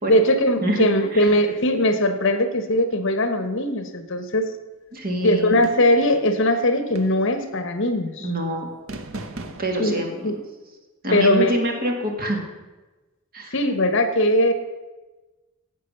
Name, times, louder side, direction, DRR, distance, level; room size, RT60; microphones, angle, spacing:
voice 1, 0.1-4.5 5.2-8.3 9.8-10.3 11.1-11.6 13.5-14.5, left 1 dB, 60° left, 9 dB, 1.1 m, -20 dB
voice 2, 0.6-1.3 4.9-5.7 8.2-8.7 9.6-10.3 11.0-12.4 13.3-13.6, equal, 45° right, 2 dB, 2.1 m, -26 dB
sound 1, 5.6-6.1 7.0-7.4 8.9-9.9, right 2 dB, 65° right, 1.0 m, -37 dB
11.5 x 7.8 x 6.7 m, 1.2 s
head